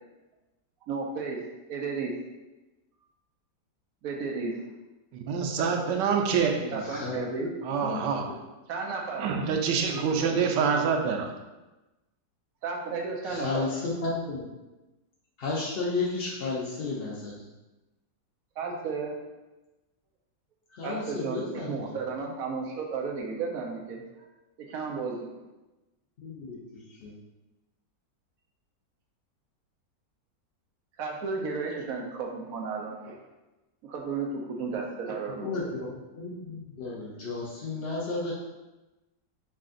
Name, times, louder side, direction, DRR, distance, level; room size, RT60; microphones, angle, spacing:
voice 1, 0.9-1.4 1.7-2.1 4.0-4.6 6.7-7.5 8.7-9.4 9.8-10.1 12.6-13.7 18.6-19.1 20.8-24.0 24.6-25.2 31.0-33.2 33.8-35.7, right 4 dB, 65° right, 0 dB, 1.0 m, -33 dB
voice 2, 5.2-6.8 7.6-8.2 9.2-11.3, right 6 dB, 90° right, 3 dB, 1.3 m, -26 dB
voice 3, 6.8-7.5 7.8-8.0 10.2-10.9 13.2-14.5 15.4-17.4 20.7-21.9 26.2-27.1 35.3-35.9 36.1-38.3, left 3 dB, 85° left, -4 dB, 0.5 m, -33 dB
5.0 x 2.4 x 3.7 m, 1.1 s
omnidirectional pair, 1.9 m